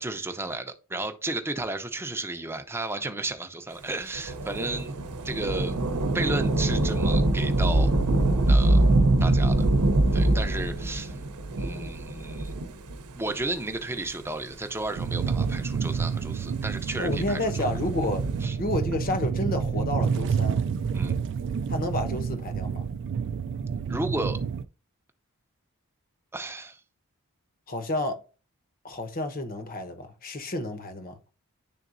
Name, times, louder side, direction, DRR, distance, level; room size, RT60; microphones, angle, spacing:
voice 1, 0.0-5.0 5.2-5.8 6.1-7.9 8.5-8.8 9.2-9.6 10.1-11.2 11.6-12.6 13.2-17.7 18.4-18.6 20.9-21.2 23.9-24.4 26.3-26.8, right 2 dB, 10° right, 0.6 m, -33 dB
Thunder / Rain, 4.1-13.1 13.9-14.0 14.9-16.2 17.7-18.4, right 2 dB, 85° right, 0.7 m, -24 dB
sound 1, 15.0-24.7, right 6 dB, 55° right, 0.3 m, -29 dB
voice 2, 17.0-18.2 18.6-20.6 21.7-22.8 27.7-28.2 28.8-31.2, left 1 dB, 40° left, 1.0 m, -30 dB
10.0 x 3.8 x 2.6 m
head